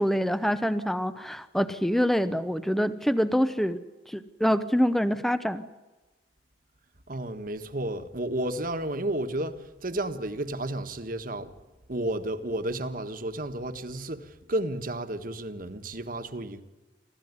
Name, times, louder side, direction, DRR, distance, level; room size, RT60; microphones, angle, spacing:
voice 1, 0.0-3.8 4.1-5.7, equal, ahead, 0.7 m, -25 dB
voice 2, 7.1-11.5 11.9-16.6, right 1 dB, 50° right, 1.5 m, -32 dB
26.5 x 14.5 x 9.7 m
head